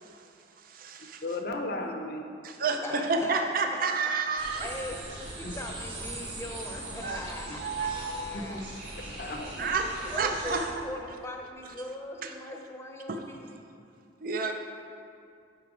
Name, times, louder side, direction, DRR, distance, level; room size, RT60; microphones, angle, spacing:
voice 1, 0.6-1.2 2.4-4.7 7.0-7.2 7.6-8.3 9.6-10.7 12.2-12.3 13.1-13.2 14.2-14.5, right 4 dB, 50° right, 4 dB, 0.5 m, -30 dB
voice 2, 1.2-2.3 5.4-5.6 7.5-7.6 8.3-8.7 9.0-9.7, left 2 dB, 55° left, 3 dB, 0.6 m, -35 dB
voice 3, 2.8-3.5 4.6-8.6 9.1-9.3 10.0-13.7, left 1 dB, 15° left, 1 dB, 0.7 m, -40 dB
sound 1, 4.4-10.7, right 2 dB, 65° right, 2.0 m, -40 dB
8.7 x 5.6 x 4.8 m, 2.4 s
head